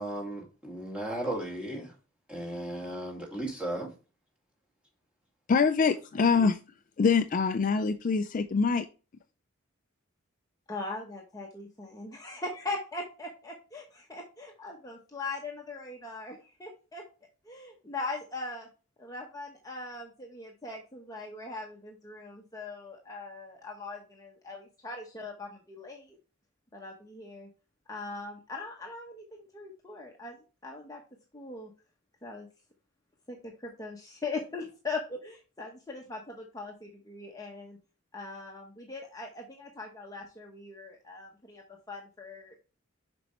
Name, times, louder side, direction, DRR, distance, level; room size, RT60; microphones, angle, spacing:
voice 1, 0.0-1.9 2.3-3.9, right 1 dB, 5° right, 2.2 m, -35 dB
voice 2, 5.5-6.6 7.0-8.9, left 5 dB, 40° left, 0.4 m, -24 dB
voice 3, 10.7-17.0 17.4-18.7 19.0-26.2 26.7-27.5 27.9-30.4 30.6-31.0 31.3-31.7 32.2-32.5 33.3-37.8 38.1-42.6, left 3 dB, 15° left, 1.0 m, -40 dB
7.0 x 5.3 x 3.0 m
head